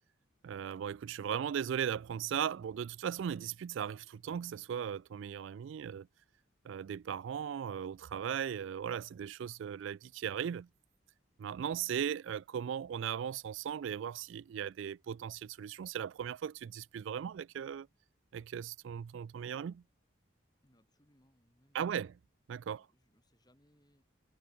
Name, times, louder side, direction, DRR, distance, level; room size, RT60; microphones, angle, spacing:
voice 1, 0.4-6.1 6.6-10.7 11.4-17.9 18.3-19.8 21.7-22.1 22.5-22.9, right 8 dB, 70° right, 0.3 m, -37 dB
voice 2, 20.6-22.2 22.5-24.0, equal, 20° left, 7.1 m, -70 dB
head